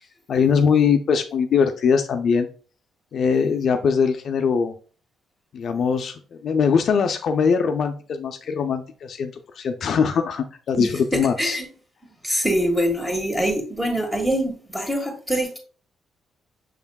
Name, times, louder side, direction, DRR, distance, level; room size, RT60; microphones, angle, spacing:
voice 1, 0.3-2.5 3.1-4.7 5.5-11.6, left 6 dB, 60° left, 6 dB, 0.5 m, -21 dB
voice 2, 12.2-15.6, equal, 10° right, 2 dB, 1.6 m, -24 dB
6.3 x 3.5 x 2.3 m, 0.39 s
cardioid pair, 90°, 0 cm